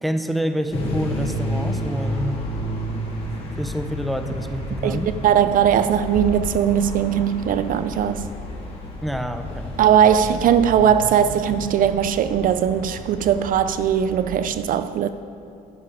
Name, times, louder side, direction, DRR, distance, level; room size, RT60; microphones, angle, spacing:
voice 1, 0.0-2.4 3.6-5.1 9.0-9.7, equal, ahead, 0.6 m, -27 dB
sound 1, 0.7-14.4, left 1 dB, 35° left, 2.2 m, -31 dB
voice 2, 4.8-8.3 9.8-15.1, right 9 dB, 55° right, 0.4 m, -19 dB
10.0 x 10.0 x 5.0 m
cardioid pair, 110°, 17 cm